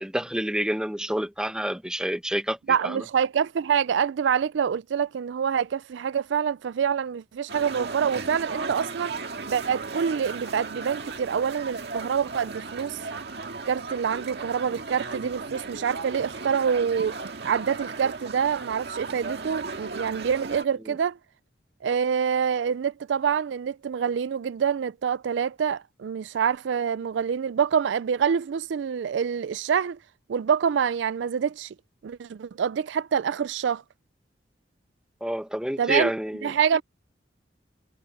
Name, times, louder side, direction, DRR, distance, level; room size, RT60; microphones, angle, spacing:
voice 1, 0.0-3.0 20.9-21.0 35.2-36.5, equal, 5° right, 1.0 m, -28 dB
voice 2, 2.7-9.2 9.5-13.0 13.7-17.1 17.4-21.2 21.8-30.0 30.3-31.7 32.0-33.8 35.8-36.1 36.4-36.8, right 7 dB, 85° right, 0.4 m, -26 dB
sound 1, 7.5-20.6, right 4 dB, 65° right, 1.9 m, -36 dB
head